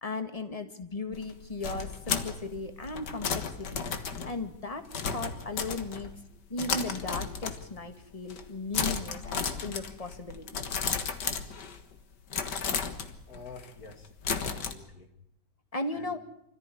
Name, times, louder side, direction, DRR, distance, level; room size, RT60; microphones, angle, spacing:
voice 1, 0.0-3.9 4.2-6.1 6.5-10.6 15.7-16.2, left 3 dB, 20° left, 8 dB, 1.7 m, -36 dB
sound 1, 1.1-6.2 6.6-7.9 8.2-8.5 8.7-12.0 12.3-14.7, left 6 dB, 70° left, 2.1 m, -34 dB
voice 2, 13.3-15.1 15.9-16.2, left 3 dB, 55° left, 5 dB, 2.9 m, -49 dB
25.5 x 14.5 x 9.9 m, 0.79 s
omnidirectional pair, 1.9 m